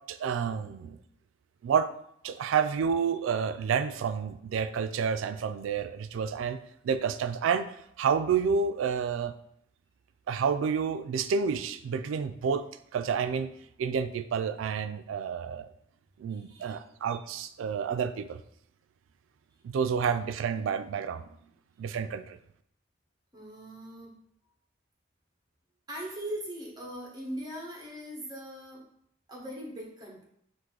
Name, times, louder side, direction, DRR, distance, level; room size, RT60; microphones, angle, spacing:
voice 1, 0.1-1.0 1.6-1.9 2.2-6.6 6.8-7.7 8.0-9.3 10.3-12.6 12.9-13.5 13.8-15.7 16.2-18.4 19.6-21.2 21.8-22.4, right 6 dB, 85° right, 11 dB, 0.3 m, -29 dB
voice 2, 16.3-16.8 23.3-24.1 25.9-28.9 29.3-30.2, right 1 dB, 20° right, -2 dB, 1.0 m, -40 dB
4.7 x 2.5 x 3.7 m, 0.70 s
head